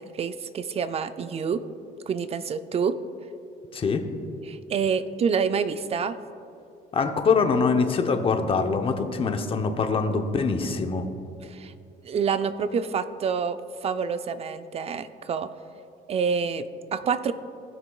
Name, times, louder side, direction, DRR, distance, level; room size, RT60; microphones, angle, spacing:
voice 1, 0.0-1.6 2.1-3.0 4.5-6.2 11.4-11.7 12.0-15.5 16.1-17.3, right 6 dB, 35° right, 12 dB, 0.4 m, -27 dB
voice 2, 6.9-11.0, left 5 dB, 35° left, 6 dB, 0.7 m, -24 dB
16.5 x 6.0 x 2.3 m, 2.6 s
cardioid pair, 110°, 17 cm